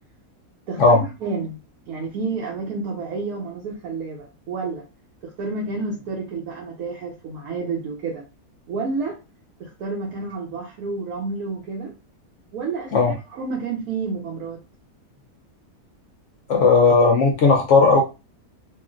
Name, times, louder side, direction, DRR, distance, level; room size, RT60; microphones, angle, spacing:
voice 1, 0.7-1.6 1.9-4.8 5.2-8.3 8.7-9.2 9.6-11.9 12.5-14.6, right 4 dB, 70° right, 1.1 m, -30 dB
voice 2, 16.5-18.0, left 4 dB, 65° left, 0.7 m, -15 dB
3.0 x 2.5 x 2.3 m
omnidirectional pair, 1.7 m